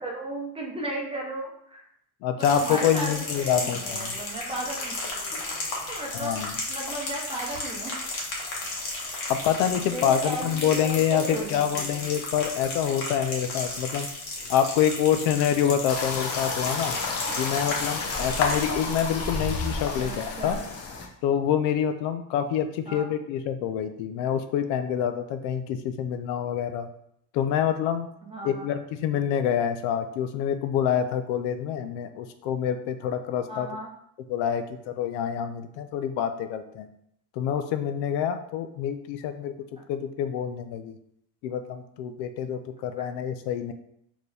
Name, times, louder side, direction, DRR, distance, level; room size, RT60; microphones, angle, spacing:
voice 1, 0.0-1.8 2.3-4.9 5.3-5.4 5.9-6.4 6.7-7.9 8.8-8.9 9.8-12.0 19.9-20.6 22.9-23.1 28.2-28.7 33.5-33.9, right 1 dB, 15° right, -1 dB, 0.7 m, -35 dB
voice 2, 2.2-4.1 6.1-6.5 9.3-14.1 14.5-17.0 17.4-20.6 21.2-26.9 27.3-28.1 28.4-33.7 34.3-36.9 37.4-39.5 39.9-40.9 41.4-43.7, left 9 dB, 80° left, 9 dB, 0.6 m, -26 dB
sound 1, 2.4-18.7, left 2 dB, 55° left, 1.4 m, -34 dB
sound 2, 15.9-21.1, left 4 dB, 35° left, 0.6 m, -30 dB
4.2 x 3.0 x 3.3 m, 0.72 s
cardioid pair, 140°, 45 cm